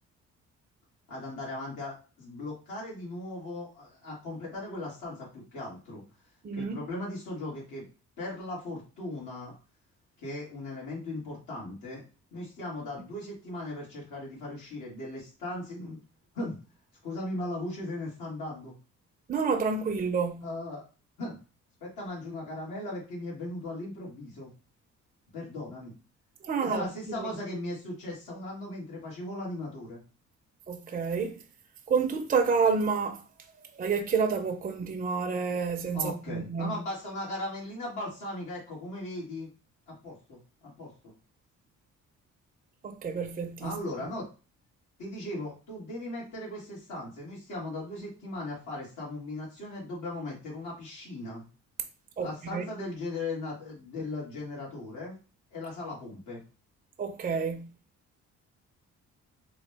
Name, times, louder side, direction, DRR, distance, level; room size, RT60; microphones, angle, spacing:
voice 1, 1.1-6.0 6.5-7.8 8.2-9.5 10.2-12.0 12.3-16.0 16.3-16.5 17.0-18.7 20.4-20.8 21.2-21.4 21.8-24.5 25.3-25.9 26.6-30.0 35.9-39.5 39.9-41.1 43.6-44.3 45.0-51.5 52.2-55.2 55.5-56.4, left 2 dB, 85° left, 2.1 m, -38 dB
voice 2, 6.4-6.8 19.3-20.4 26.4-27.3 30.7-31.4 31.9-33.2 33.8-36.8 42.8-43.8 52.2-52.6 57.0-57.7, right 5 dB, 30° right, 0.5 m, -29 dB
3.8 x 2.4 x 3.3 m
cardioid pair, 90°, 30 cm